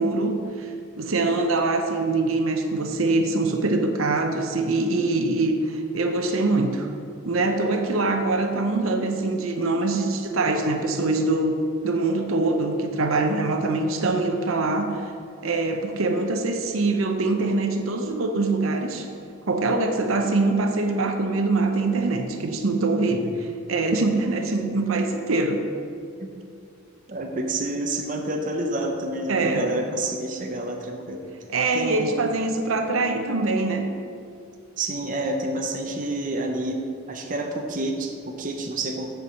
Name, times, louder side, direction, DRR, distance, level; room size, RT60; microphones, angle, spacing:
voice 1, 0.0-6.9 7.2-11.6 11.8-14.9 15.4-19.1 19.5-25.6 29.3-29.8 31.5-33.9, right 2 dB, 85° right, 5 dB, 0.8 m, -24 dB
voice 2, 27.1-31.2 31.7-32.3 34.8-39.1, right 2 dB, 40° right, 2 dB, 0.7 m, -28 dB
8.5 x 4.7 x 6.9 m, 2.5 s
head